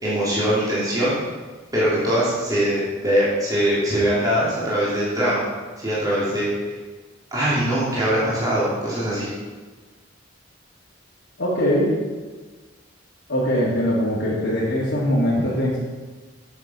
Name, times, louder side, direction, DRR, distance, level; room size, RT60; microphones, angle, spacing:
voice 1, 0.0-1.1 1.7-5.4 5.8-6.5 7.3-9.3, equal, 20° right, -9 dB, 3.3 m, -22 dB
voice 2, 11.4-12.0 13.3-15.8, equal, 60° left, -10 dB, 2.4 m, -21 dB
9.5 x 6.9 x 5.7 m, 1.4 s
head